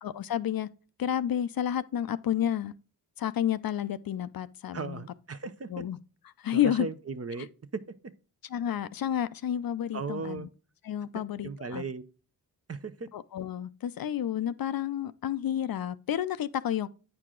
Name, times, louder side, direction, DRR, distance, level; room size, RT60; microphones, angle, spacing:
voice 1, 0.0-0.7 1.0-2.7 3.2-5.0 5.7-6.0 6.4-6.9 8.5-10.5 10.8-11.8 13.1-16.9, left 10 dB, 60° left, 0.5 m, -30 dB
voice 2, 4.7-5.8 6.5-7.5 7.7-8.1 9.9-10.5 11.1-12.0 12.7-13.1, right 4 dB, 35° right, 0.7 m, -37 dB
8.7 x 4.7 x 3.7 m
cardioid pair, 40°, 40 cm